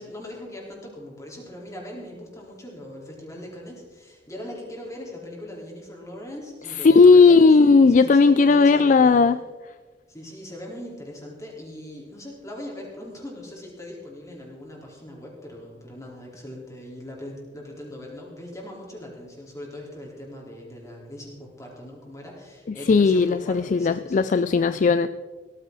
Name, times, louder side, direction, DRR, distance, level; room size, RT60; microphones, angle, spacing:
voice 1, 0.0-9.2 10.1-24.2 24.7-24.9, left 1 dB, 20° left, -3 dB, 4.3 m, -40 dB
voice 2, 6.8-9.4 22.9-25.1, left 4 dB, 45° left, 13 dB, 0.4 m, -16 dB
17.5 x 14.5 x 4.1 m, 1.4 s
head